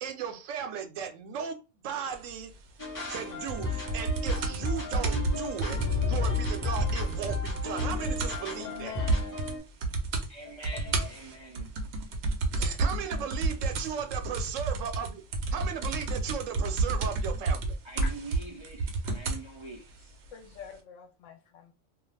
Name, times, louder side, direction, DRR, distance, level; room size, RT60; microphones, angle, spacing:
voice 1, 0.0-2.5 3.1-5.8 6.1-8.9 12.5-15.2 15.5-17.8, right 8 dB, 85° right, 0.9 m, -36 dB
sound 1, 2.8-9.6, left 3 dB, 20° left, 0.8 m, -33 dB
sound 2, 3.5-8.5 8.8-8.9 9.1-9.5 9.8-10.3 10.6-19.5 20.3-20.4, right 3 dB, 65° right, 0.8 m, -30 dB
voice 2, 8.6-9.4 10.4-11.1 18.0-18.1 20.3-21.7, left 9 dB, 75° left, 0.9 m, -44 dB
voice 3, 10.3-11.8 17.8-20.2, right 2 dB, 40° right, 0.4 m, -44 dB
2.4 x 2.3 x 3.2 m
omnidirectional pair, 1.3 m